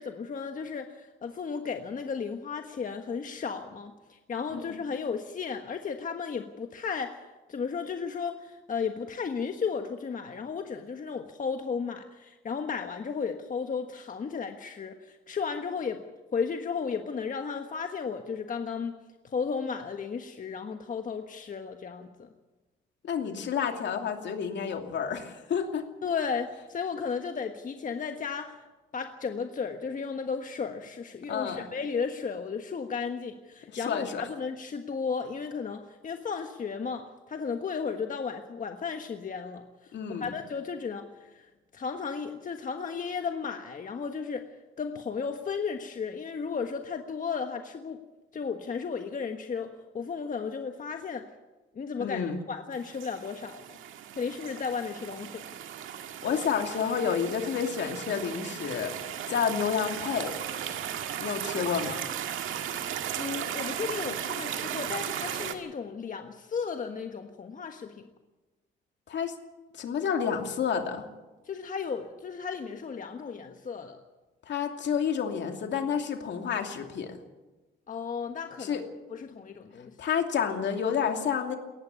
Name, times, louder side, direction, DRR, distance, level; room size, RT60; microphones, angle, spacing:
voice 1, 0.0-16.0 16.3-19.0 19.2-22.3 26.0-28.6 28.9-44.5 44.8-48.0 48.3-51.3 51.7-53.8 54.2-55.5 63.2-68.1 71.4-74.0 77.9-78.8 79.1-80.0, left 5 dB, 40° left, 5 dB, 1.4 m, -34 dB
voice 2, 23.0-25.8 31.3-31.7 33.7-34.2 39.9-40.3 52.0-52.4 56.2-58.9 59.3-60.4 61.2-62.0 69.1-69.3 69.7-71.1 74.5-77.2 78.6-78.8 80.0-81.6, left 7 dB, 65° left, 4 dB, 2.7 m, -30 dB
sound 1, 52.7-65.5, right 10 dB, 85° right, 1.8 m, -36 dB
19.0 x 14.5 x 9.6 m, 1.1 s
cardioid pair, 90°, 20 cm